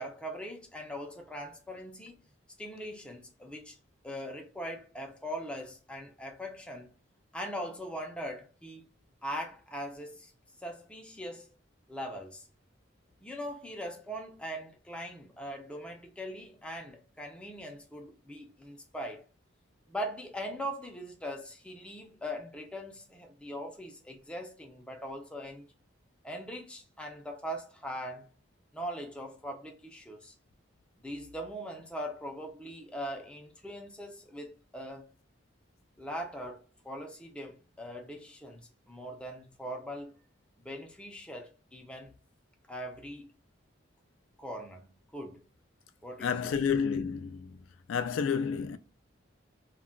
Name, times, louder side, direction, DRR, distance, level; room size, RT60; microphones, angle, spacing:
voice 1, 0.0-2.2 2.6-3.8 4.0-6.9 7.3-8.8 9.2-10.3 10.6-11.5 11.9-12.5 13.2-19.2 19.9-25.7 26.2-28.3 28.7-30.4 31.0-35.1 36.0-40.1 40.6-42.1 42.7-43.3 44.4-45.4 46.0-46.5, equal, 5° left, 0.4 m, -41 dB
voice 2, 46.2-47.6 47.9-48.8, left 6 dB, 90° left, 0.3 m, -30 dB
2.2 x 2.2 x 3.6 m
head